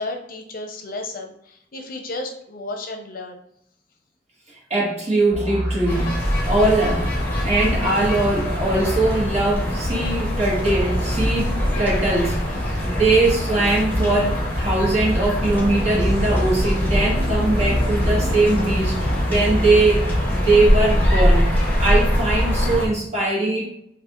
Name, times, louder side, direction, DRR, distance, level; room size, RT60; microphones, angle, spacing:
voice 1, 0.0-3.4, left 2 dB, 50° left, 4 dB, 0.6 m, -33 dB
voice 2, 4.7-20.0 20.3-21.5 21.8-23.7, right 2 dB, 40° right, -4 dB, 1.5 m, -21 dB
sound 1, 5.3-8.0 9.0-9.1 9.9-10.0 10.4-13.4 14.2-14.3 15.2-15.3 15.7-15.8 16.0-18.7 19.7-19.8, equal, 20° right, 1.6 m, -28 dB
sound 2, 5.9-22.9, equal, 10° left, 1.2 m, -22 dB
5.9 x 2.5 x 2.9 m, 0.73 s
head